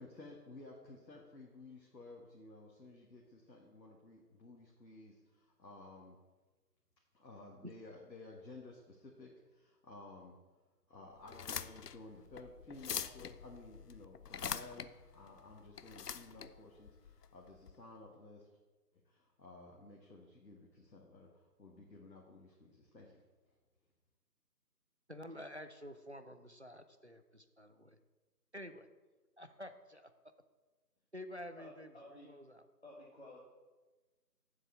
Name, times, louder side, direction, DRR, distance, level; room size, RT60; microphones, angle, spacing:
voice 1, 0.0-6.2 7.1-10.4 10.9-18.5 19.0-23.2, left 2 dB, 90° left, -1 dB, 1.7 m, -54 dB
sound 1, 11.2-17.7, left 8 dB, 70° left, 0.6 m, -44 dB
voice 2, 25.1-28.0 28.5-28.9 29.4-30.1 31.1-31.9 32.2-32.7, equal, 45° right, 9 dB, 0.4 m, -49 dB
voice 3, 31.6-32.3 32.8-33.4, left 1 dB, 40° left, -5 dB, 1.4 m, -53 dB
7.5 x 4.9 x 7.0 m, 1.2 s
figure-of-eight pair, 170°, 49 cm